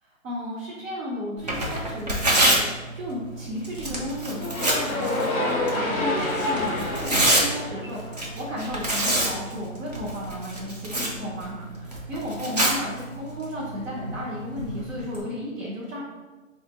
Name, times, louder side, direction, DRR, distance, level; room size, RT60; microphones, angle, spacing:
voice 1, 0.0-16.0, left 1 dB, 65° right, -4 dB, 0.9 m, -34 dB
Tearing, 1.4-15.2, right 1 dB, 30° right, 0.4 m, -28 dB
sound 1, 4.3-8.5, left 1 dB, 30° left, 0.5 m, -28 dB
2.8 x 2.5 x 4.1 m, 1.3 s
hypercardioid pair, 155°, 41 cm